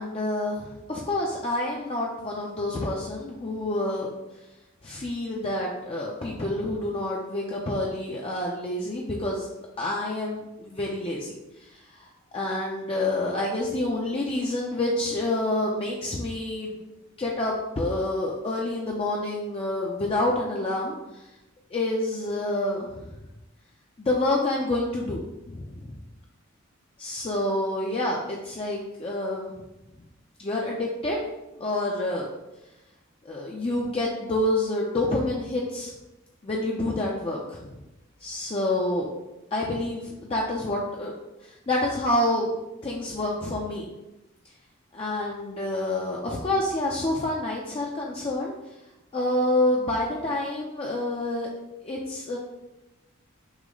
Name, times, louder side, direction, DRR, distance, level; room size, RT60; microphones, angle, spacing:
voice 1, 0.0-4.1 4.8-9.5 9.8-16.7 17.2-21.3 21.7-22.9 24.0-25.2 25.5-26.0 27.0-29.6 30.4-31.2 31.6-32.3 33.2-35.9 36.4-37.8 38.2-39.1 39.5-41.1 41.4-43.8 44.9-48.5 49.1-51.5 51.8-52.4, left 1 dB, 30° left, -2 dB, 0.5 m, -28 dB
6.2 x 2.1 x 3.8 m, 0.98 s
head